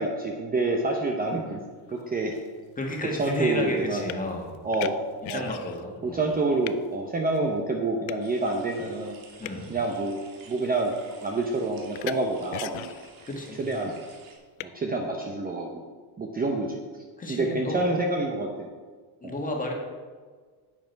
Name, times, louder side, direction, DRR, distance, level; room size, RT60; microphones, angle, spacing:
voice 1, 0.0-1.6 1.9-2.4 3.2-4.1 4.6-5.0 5.3-5.5 6.0-9.2 9.7-10.2 10.5-10.9 11.2-12.9 13.6-13.9 14.6-15.8 16.2-16.8 17.3-18.7 19.2-19.4, right 2 dB, 20° right, 1 dB, 0.8 m, -27 dB
sound 1, 1.9-2.0 2.3-5.9 6.2-6.9 7.3-7.4 8.1-8.3 9.1-9.7 10.4-10.8 11.1-11.4 11.9-12.2 12.5-13.2 14.6-14.7, left 16 dB, 75° left, 0.6 m, -38 dB
voice 2, 2.8-4.5 5.3-6.2 9.4-9.7 13.3-13.6 17.2-17.8 19.2-19.7, left 1 dB, 15° left, 0 dB, 1.7 m, -32 dB
sound 2, 8.2-14.3, right 4 dB, 75° right, 2.4 m, -52 dB
11.0 x 7.8 x 4.6 m, 1.5 s
cardioid pair, 145°, 46 cm